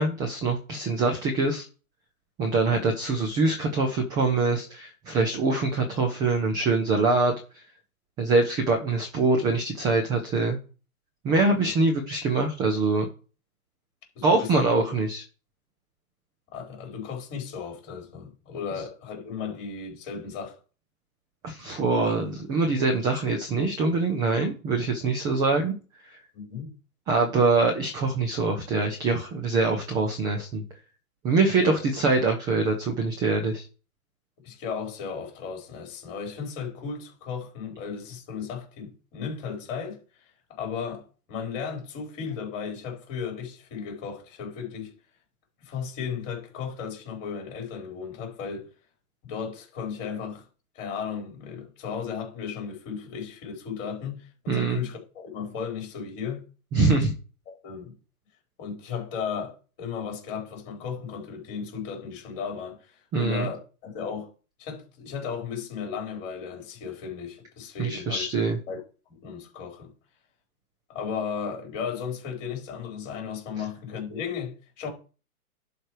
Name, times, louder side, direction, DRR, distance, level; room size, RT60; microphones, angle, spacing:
voice 1, 0.0-1.6 2.4-7.4 8.2-10.6 11.2-13.1 14.2-15.2 21.4-25.7 27.1-30.6 31.2-33.6 54.5-54.8 56.7-57.1 63.1-63.5 67.8-68.6, right 3 dB, 10° right, 0.5 m, -24 dB
voice 2, 11.3-11.7 14.1-14.7 16.5-20.6 26.3-26.7 31.6-31.8 34.4-40.0 40.5-44.9 45.6-48.7 49.2-50.4 50.7-56.4 57.5-58.0 58.6-64.3 64.6-68.2 68.7-68.8 69.1-69.9 70.9-74.9, left 6 dB, 30° left, 4.3 m, -35 dB
11.5 x 4.5 x 4.9 m
hypercardioid pair, 140°, 44 cm